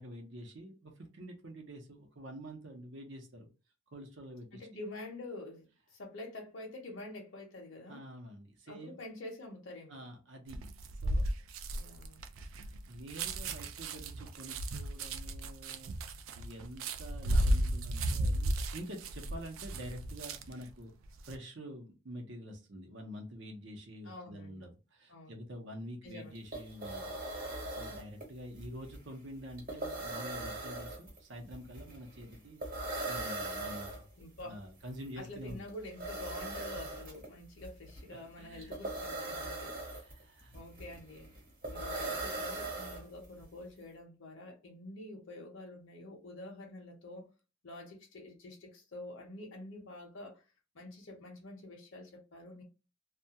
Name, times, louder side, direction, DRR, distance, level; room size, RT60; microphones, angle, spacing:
voice 1, 0.0-3.5 3.9-4.6 7.9-9.0 9.9-10.6 11.0-11.3 12.4-16.0 16.4-20.9 21.2-32.6 33.1-34.0 34.4-35.6 38.4-38.7 39.9-40.6, equal, 60° right, 0.7 m, -47 dB
voice 2, 4.5-8.1 8.7-10.0 11.7-12.2 24.0-24.6 25.1-25.4 26.0-26.3 34.2-34.6 35.2-39.8 40.5-41.3 41.7-47.3 47.6-50.4 50.7-52.6, left 2 dB, 65° left, 0.7 m, -47 dB
sound 1, 10.5-20.6 21.0-21.3, right 1 dB, 80° right, 0.4 m, -34 dB
sound 2, 26.0-26.1 26.3-43.4, right 2 dB, 45° right, 1.1 m, -41 dB
2.3 x 2.3 x 2.8 m
head